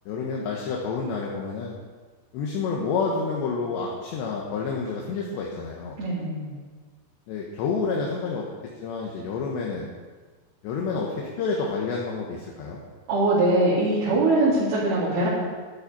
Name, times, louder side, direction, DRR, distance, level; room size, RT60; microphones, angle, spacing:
voice 1, 0.1-1.8 2.3-6.0 7.3-8.5 8.8-9.9 10.6-12.8, left 4 dB, 70° left, -2 dB, 3.3 m, -29 dB
voice 2, 6.0-6.5 13.1-15.3, right 2 dB, 55° right, -9 dB, 4.9 m, -22 dB
12.0 x 11.5 x 5.5 m, 1.4 s
omnidirectional pair, 5.6 m